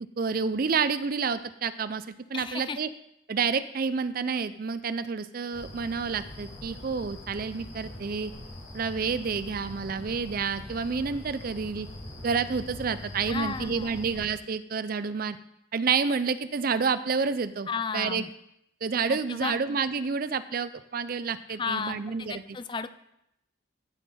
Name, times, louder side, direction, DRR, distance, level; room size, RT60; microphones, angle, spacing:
voice 1, 0.2-2.9 3.3-8.3 8.7-11.9 12.2-15.4 15.7-17.7 17.9-18.2 18.8-22.4, right 5 dB, 45° right, 13 dB, 0.4 m, -29 dB
voice 2, 2.3-2.8 13.3-14.0 17.7-18.3 19.1-19.5 21.5-22.9, left 5 dB, 25° left, 12 dB, 0.4 m, -34 dB
sound 1, 5.5-14.3, left 1 dB, 65° left, 3.1 m, -43 dB
14.5 x 5.5 x 4.3 m, 0.81 s
head